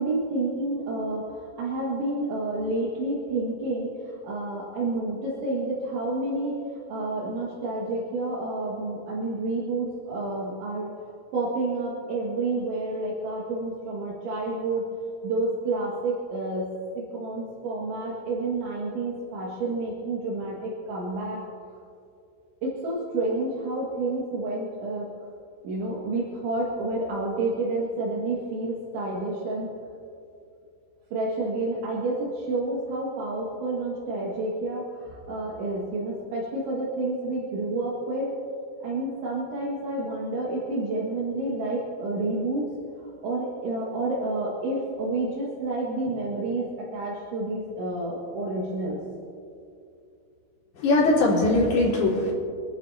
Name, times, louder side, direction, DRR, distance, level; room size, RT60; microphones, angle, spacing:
voice 1, 0.0-1.3 1.6-3.9 4.2-10.9 11.3-14.9 15.2-16.7 17.0-21.4 22.6-25.1 25.6-29.7 31.1-38.3 38.8-42.6 43.2-49.0, right 2 dB, 80° right, -6 dB, 4.2 m, -29 dB
voice 2, 50.8-52.3, left 2 dB, 60° left, -7 dB, 5.6 m, -21 dB
26.0 x 12.5 x 2.9 m, 2.5 s
omnidirectional pair, 5.3 m